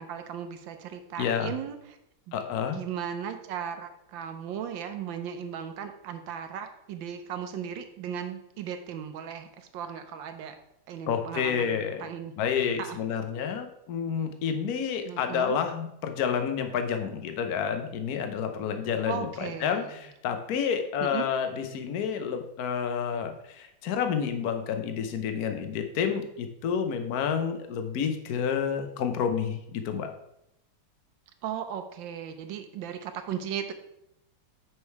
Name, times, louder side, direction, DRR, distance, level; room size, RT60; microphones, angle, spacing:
voice 1, 0.0-2.0 2.3-2.4 2.7-10.6 10.9-12.3 12.8-13.0 15.0-15.6 19.0-19.8 21.0-21.3 31.4-33.7, right 8 dB, 75° right, 7 dB, 1.3 m, -36 dB
voice 2, 1.2-1.5 2.3-2.8 11.1-12.0 12.4-30.1, left 7 dB, 60° left, 6 dB, 1.1 m, -29 dB
6.4 x 5.2 x 4.6 m, 0.81 s
omnidirectional pair, 2.2 m